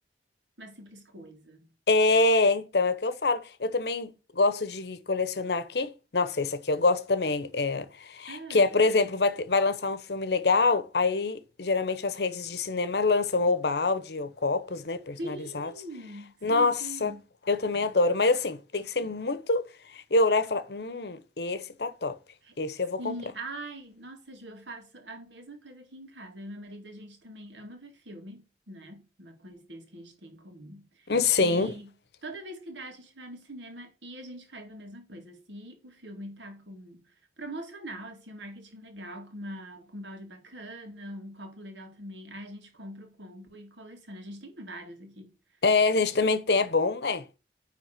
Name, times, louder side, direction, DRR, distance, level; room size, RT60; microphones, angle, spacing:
voice 1, 0.6-1.7 8.3-8.8 15.2-17.2 22.4-22.5 23.0-31.1 31.4-31.9 32.2-45.3, right 1 dB, 85° right, 2.1 m, -43 dB
voice 2, 1.9-15.7 16.4-17.1 17.5-19.6 19.9-22.2 22.6-23.2 31.1-31.7 45.6-47.2, left 3 dB, 65° left, 0.8 m, -26 dB
9.5 x 3.5 x 5.0 m
head